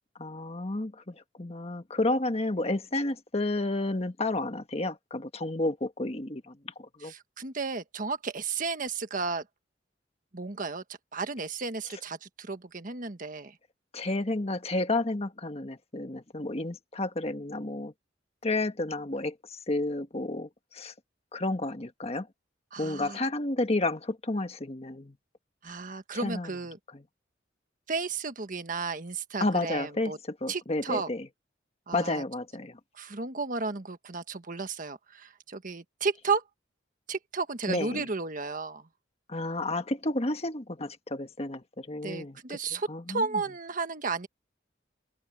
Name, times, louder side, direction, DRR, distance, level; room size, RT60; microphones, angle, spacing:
voice 1, 0.2-6.6 7.0-7.1 13.9-17.9 18.4-20.9 21.3-22.3 22.8-25.1 26.2-26.5 29.4-31.2 31.9-32.8 37.7-38.0 39.3-42.4 42.9-43.2, left 2 dB, 35° left, 1.4 m, -31 dB
voice 2, 7.0-9.4 10.3-10.8 11.1-13.6 22.7-23.2 25.6-26.8 27.9-30.2 30.5-31.1 31.9-32.2 32.9-36.4 37.1-38.9 42.0-44.3, right 4 dB, 45° right, 1.4 m, -33 dB
open air
head